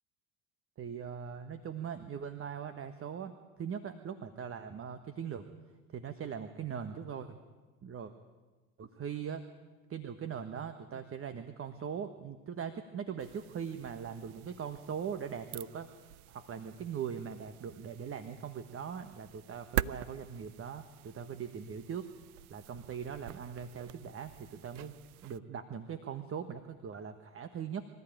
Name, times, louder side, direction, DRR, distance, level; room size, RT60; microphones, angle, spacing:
voice 1, 0.8-5.5 5.9-7.4 7.8-8.1 8.8-9.4 9.9-15.9 16.3-22.1 22.5-25.0 25.2-27.9, right 7 dB, 30° right, 9 dB, 1.4 m, -40 dB
sound 1, 13.2-25.4, right 14 dB, 75° right, 0.6 m, -44 dB
25.0 x 14.0 x 9.1 m, 1.3 s
hypercardioid pair, 80°, 44 cm